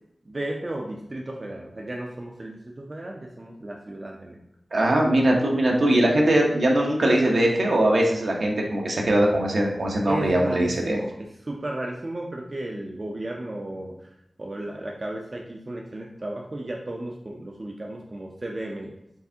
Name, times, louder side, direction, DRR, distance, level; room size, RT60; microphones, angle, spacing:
voice 1, 0.3-4.4 10.1-14.1 14.4-18.9, right 1 dB, 35° right, -1 dB, 0.5 m, -34 dB
voice 2, 4.7-11.0, right 1 dB, 70° right, -1 dB, 0.9 m, -21 dB
4.6 x 3.3 x 2.8 m, 0.81 s
wide cardioid pair, 80°, 0 cm